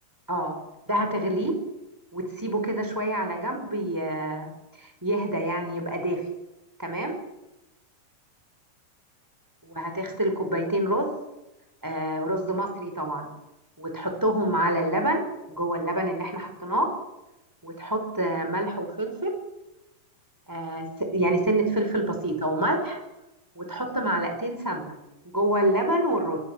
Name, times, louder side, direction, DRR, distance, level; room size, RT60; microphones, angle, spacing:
voice 1, 0.9-1.6 2.1-4.5 4.8-6.2 6.8-7.1 9.6-11.1 11.8-13.3 13.8-15.2 15.5-16.9 17.6-19.3 20.5-23.0 23.5-24.9 25.2-26.4, right 1 dB, 5° right, 4 dB, 5.1 m, -27 dB
24.5 x 24.0 x 7.6 m, 0.97 s
omnidirectional pair, 4.0 m